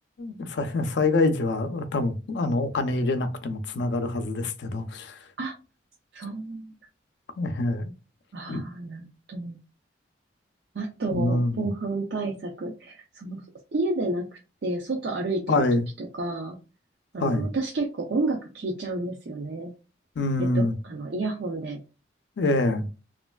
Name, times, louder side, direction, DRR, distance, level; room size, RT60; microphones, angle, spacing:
voice 1, 0.2-5.2 7.4-7.9 8.5-8.6 11.1-11.7 15.5-15.9 17.2-17.5 20.2-20.7 22.4-22.9, left 2 dB, 75° left, 0.4 m, -25 dB
voice 2, 6.1-6.7 8.3-9.6 10.7-13.4 13.7-15.6 16.0-16.6 17.1-19.7 20.4-21.8, right 2 dB, 65° right, 0.5 m, -31 dB
3.1 x 2.4 x 2.2 m
head